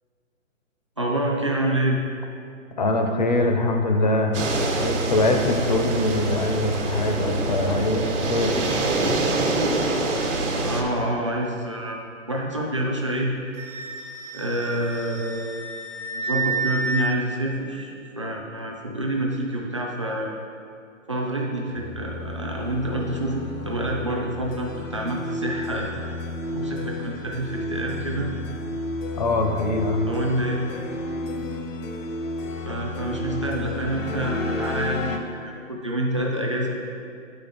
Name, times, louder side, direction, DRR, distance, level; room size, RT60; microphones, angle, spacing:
voice 1, 1.0-2.0 10.6-12.0 12.3-13.3 14.3-15.7 16.1-20.3 21.1-26.1 26.5-28.3 30.0-30.7 32.6-36.8, right 1 dB, 25° right, -2 dB, 0.4 m, -27 dB
voice 2, 2.8-4.4 4.8-8.6 29.2-30.1, left 2 dB, 35° left, 4 dB, 0.5 m, -23 dB
sound 1, 4.3-10.8, right 2 dB, 60° right, 1.2 m, -25 dB
Wind instrument woodwind instrument, 13.6-17.1, right 2 dB, 85° right, 1.0 m, -30 dB
sound 2, 21.8-35.2, left 2 dB, 70° left, 0.9 m, -32 dB
7.8 x 5.1 x 4.1 m, 2.4 s
hypercardioid pair, 160°, 39 cm